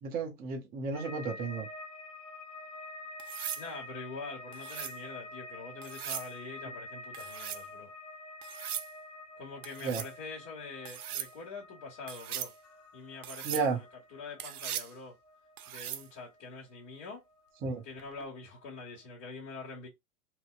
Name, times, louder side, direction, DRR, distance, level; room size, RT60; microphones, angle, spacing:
voice 1, 0.0-1.7 9.8-10.0 13.4-13.8 17.6-17.8, right 4 dB, 20° right, 0.7 m, -33 dB
sound 1, 0.9-18.1 18.3-19.1, left 2 dB, 50° left, 1.5 m, -48 dB
sound 2, 3.2-3.7 4.5-5.0 5.8-6.3 7.1-7.6 8.4-8.9 9.6-10.1 10.8-11.3 12.1-12.5 13.2-13.7 14.4-14.9 15.6-16.1 18.0-18.3, right 11 dB, 70° right, 0.6 m, -39 dB
voice 2, 3.6-7.9 9.4-12.5 12.9-13.8 14.1-15.1 15.7-17.2 17.8-19.9, left 4 dB, 30° left, 1.3 m, -44 dB
2.8 x 2.7 x 2.3 m
figure-of-eight pair, 100°, 47 cm